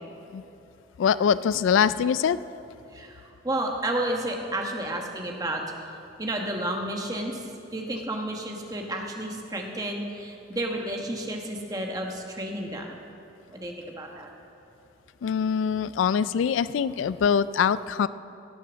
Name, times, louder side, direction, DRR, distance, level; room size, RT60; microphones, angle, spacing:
voice 1, 1.0-2.4 15.2-18.1, left 7 dB, 90° left, 16 dB, 0.3 m, -23 dB
voice 2, 2.9-5.6 6.2-13.0 13.5-14.3, right 1 dB, 20° right, 1 dB, 1.1 m, -31 dB
17.0 x 6.9 x 6.2 m, 2.8 s
head